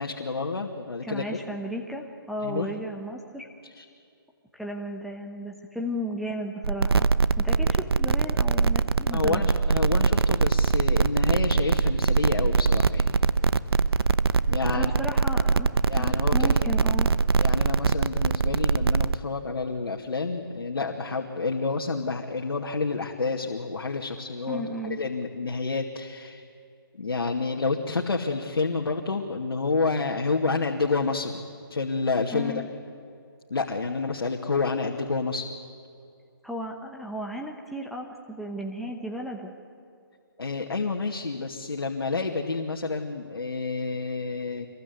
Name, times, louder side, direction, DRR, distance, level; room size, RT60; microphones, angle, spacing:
voice 1, 0.0-1.4 2.4-2.7 3.8-3.9 9.1-13.1 14.5-14.9 15.9-16.5 17.4-26.4 27.0-31.4 31.7-32.5 33.5-35.5 40.4-44.7, left 4 dB, 90° left, 0 dB, 2.4 m, -29 dB
voice 2, 1.0-3.5 4.5-7.1 7.4-9.5 14.7-17.1 24.5-25.0 32.3-32.7 36.4-39.5, equal, ahead, -1 dB, 1.0 m, -34 dB
sound 1, 6.6-19.1, right 4 dB, 85° right, 1.0 m, -22 dB
26.0 x 22.0 x 9.6 m, 2.4 s
hypercardioid pair, 170°, 13 cm